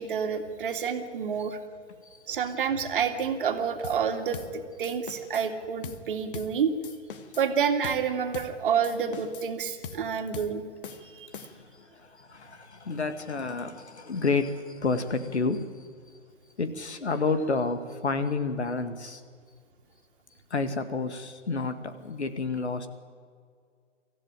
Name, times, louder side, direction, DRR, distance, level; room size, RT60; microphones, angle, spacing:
voice 1, 0.0-1.6 2.3-6.7 7.4-10.6 11.0-11.3, right 7 dB, 45° right, 6 dB, 2.4 m, -29 dB
sound 1, 3.8-4.1 4.3-4.6 4.8-5.5 5.8-6.1 6.3-6.6 6.8-7.5 7.8-8.1 8.3-8.6 8.8-9.5 9.8-10.1 10.3-10.6 10.8-11.7, left 6 dB, 50° left, 1.6 m, -42 dB
voice 2, 11.7-15.7 16.6-19.2 20.5-22.9, left 4 dB, 65° left, 10 dB, 2.1 m, -30 dB
24.5 x 15.0 x 9.1 m, 2.1 s
figure-of-eight pair, 125°, 35 cm